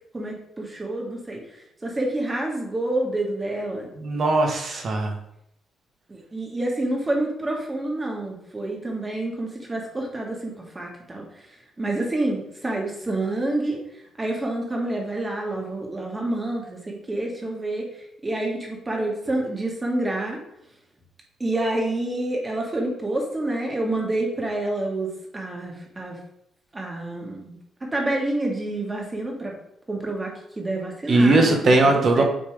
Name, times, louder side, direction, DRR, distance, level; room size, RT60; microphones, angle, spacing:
voice 1, 0.1-1.4 1.8-3.9 6.1-11.3 11.8-13.8 14.2-17.9 18.2-20.4 21.4-26.2 26.7-27.6 27.9-29.5 29.9-31.6 31.8-32.2, right 2 dB, 20° right, 0 dB, 1.8 m, -28 dB
voice 2, 4.0-5.1 31.1-32.2, right 2 dB, 50° right, 3 dB, 1.3 m, -19 dB
9.0 x 3.3 x 3.4 m, 0.76 s
cardioid pair, 90°, 0 cm